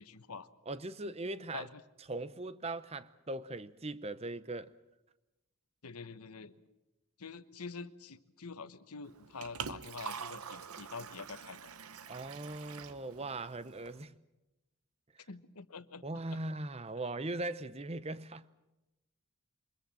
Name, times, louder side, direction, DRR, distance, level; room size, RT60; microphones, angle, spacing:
voice 1, 0.0-0.5 1.1-1.2 1.5-1.8 5.8-6.5 7.2-11.6 15.3-16.0 16.3-16.4, left 4 dB, 90° left, 1.1 m, -46 dB
voice 2, 0.7-1.7 2.1-4.7 12.1-14.2 16.0-18.5, right 2 dB, 25° right, 0.7 m, -40 dB
Liquid, 9.0-14.0, right 6 dB, 80° right, 1.0 m, -46 dB
24.5 x 21.5 x 7.6 m
head